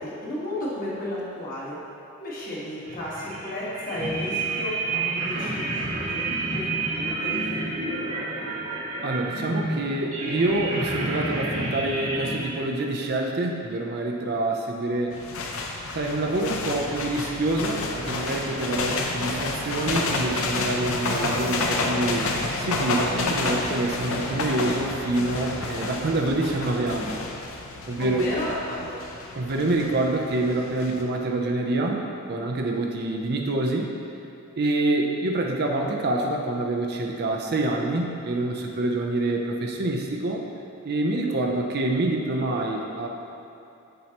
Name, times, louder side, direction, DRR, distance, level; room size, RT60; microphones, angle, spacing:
voice 1, 0.0-1.8 2.2-8.5 28.0-29.0, left 1 dB, 40° left, -7 dB, 1.5 m, -33 dB
sound 1, 2.8-12.4, right 2 dB, 85° right, 1.4 m, -29 dB
voice 2, 9.0-15.1 15.9-27.2 27.9-28.3 29.4-32.0 32.3-33.9 34.6-40.4 40.8-43.1, right 2 dB, 45° right, 1 dB, 0.5 m, -26 dB
sound 2, 15.1-31.0, left 3 dB, 65° left, 0.6 m, -30 dB
7.5 x 5.4 x 2.9 m, 2.9 s
head